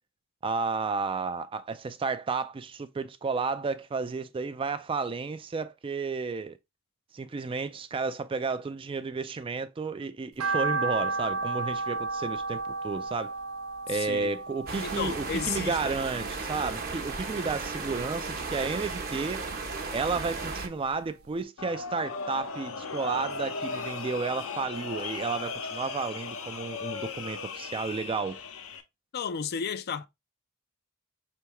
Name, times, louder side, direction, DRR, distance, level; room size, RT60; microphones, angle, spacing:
voice 1, 0.4-6.6 7.1-13.3 13.9-19.4 19.9-28.4, right 4 dB, 25° right, 0.3 m, -32 dB
sound 1, 10.4-16.7 17.1-18.2 18.6-20.0 20.4-20.5 20.9-21.0 21.3-21.4, right 3 dB, 80° right, 0.6 m, -33 dB
voice 2, 13.9-14.3 14.8-16.0 29.1-30.1, left 7 dB, 50° left, 0.4 m, -33 dB
sound 2, 14.7-20.7, right 3 dB, 45° right, 0.9 m, -35 dB
sound 3, 21.6-28.8, left 4 dB, 80° left, 0.7 m, -37 dB
4.5 x 3.4 x 2.9 m
head